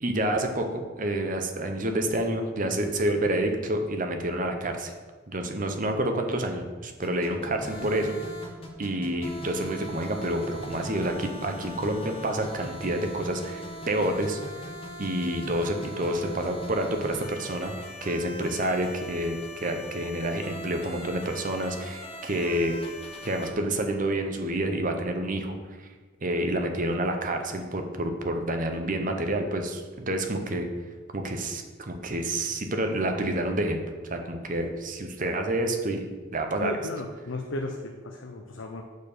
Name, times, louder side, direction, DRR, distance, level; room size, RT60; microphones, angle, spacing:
voice 1, 0.0-4.9 5.3-8.2 8.8-14.4 15.0-17.7 18.0-22.7 23.2-25.9 26.2-30.7 31.1-36.0 36.3-36.7, right 1 dB, 40° right, 5 dB, 0.9 m, -28 dB
sound 1, 7.0-23.5, equal, 30° left, 1.2 m, -40 dB
voice 2, 36.6-38.8, left 2 dB, 70° left, 2 dB, 0.7 m, -35 dB
8.2 x 4.5 x 6.7 m, 1.4 s
head